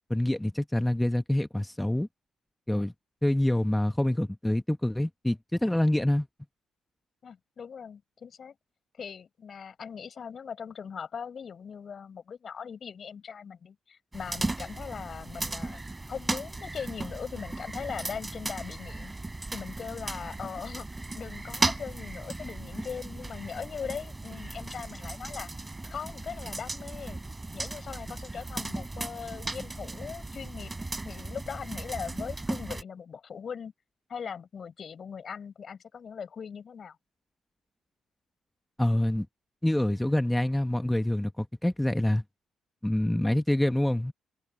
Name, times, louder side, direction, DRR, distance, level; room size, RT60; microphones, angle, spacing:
voice 1, 0.1-2.1 2.7-2.9 3.2-6.3 38.8-39.3 39.6-42.2 42.8-44.1, left 1 dB, 10° left, 1.3 m, -26 dB
voice 2, 7.2-8.5 9.0-15.8 16.1-19.1 19.5-20.9 21.1-25.5 25.8-27.2 27.5-30.7 31.0-33.7 34.1-37.0, left 6 dB, 55° left, 6.5 m, -40 dB
sound 1, 14.1-32.8, right 2 dB, 20° right, 3.7 m, -36 dB
supercardioid pair, 55°, 0 cm